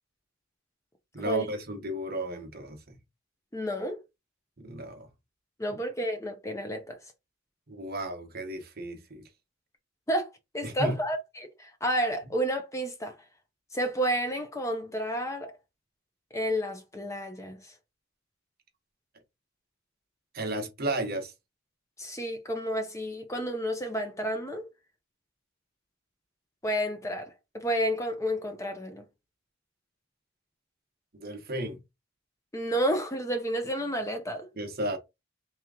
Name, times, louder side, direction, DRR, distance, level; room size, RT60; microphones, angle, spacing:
voice 1, 1.1-3.0 4.6-5.1 5.7-5.8 7.7-9.2 10.6-11.0 20.3-21.3 31.1-31.8 34.6-35.0, right 1 dB, 50° right, 1.0 m, -33 dB
voice 2, 3.5-4.0 5.6-7.0 10.1-10.3 10.5-13.1 13.7-15.5 16.3-17.6 22.0-24.7 26.6-29.0 32.5-34.5, equal, 15° left, 0.7 m, -30 dB
3.4 x 3.0 x 3.6 m
head